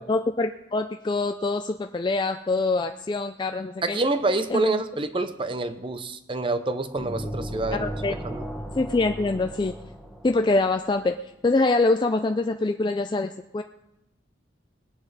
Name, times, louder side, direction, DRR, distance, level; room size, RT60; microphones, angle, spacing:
voice 1, 0.0-4.0 4.5-4.8 7.7-8.2 8.8-9.7 10.2-13.6, left 3 dB, 25° left, 6 dB, 0.3 m, -25 dB
voice 2, 3.8-7.9 8.2-8.5, right 2 dB, 30° right, 11 dB, 0.7 m, -27 dB
sound 1, 7.0-10.8, equal, ahead, 1.0 m, -36 dB
20.0 x 9.7 x 4.0 m, 0.90 s
head